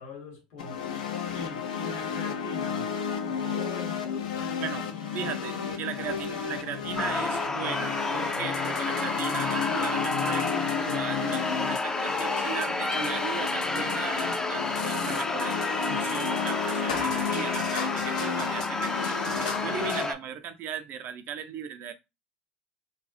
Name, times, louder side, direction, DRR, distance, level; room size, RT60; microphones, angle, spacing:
voice 1, 0.0-2.9 3.2-5.3, left 4 dB, 65° left, 0.9 m, -43 dB
sound 1, 0.6-20.1, left 7 dB, 85° left, 0.4 m, -32 dB
voice 2, 5.1-15.6 15.8-21.9, right 8 dB, 55° right, 0.5 m, -37 dB
sound 2, 7.0-20.1, left 2 dB, 15° left, 0.3 m, -31 dB
2.4 x 2.1 x 2.5 m
hypercardioid pair, 65°, 4 cm